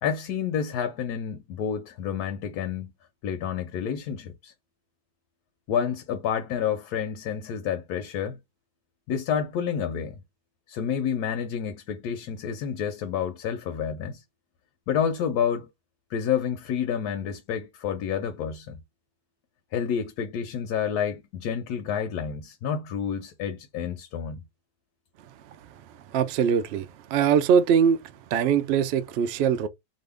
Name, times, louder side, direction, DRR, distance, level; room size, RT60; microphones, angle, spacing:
voice 1, 0.0-2.9 3.2-4.5 5.7-8.4 9.1-10.2 10.7-14.2 14.9-15.7 16.1-18.8 19.7-24.4, left 8 dB, 85° left, 1.1 m, -29 dB
voice 2, 26.1-28.0 28.3-29.7, right 7 dB, 75° right, 0.6 m, -22 dB
2.8 x 2.5 x 3.3 m
omnidirectional pair, 1.6 m